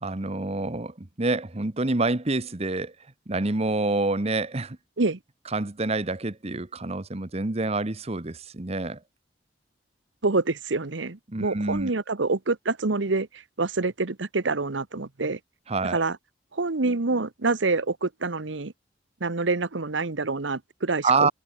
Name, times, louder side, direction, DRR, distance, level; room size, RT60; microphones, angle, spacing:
voice 1, 0.0-2.9 3.3-4.8 5.5-9.0 11.3-11.9 15.7-16.0 21.0-21.3, right 3 dB, 35° right, 1.2 m, -27 dB
voice 2, 10.2-15.4 15.9-16.2 16.5-18.7 19.2-21.3, right 3 dB, 90° right, 1.1 m, -26 dB
head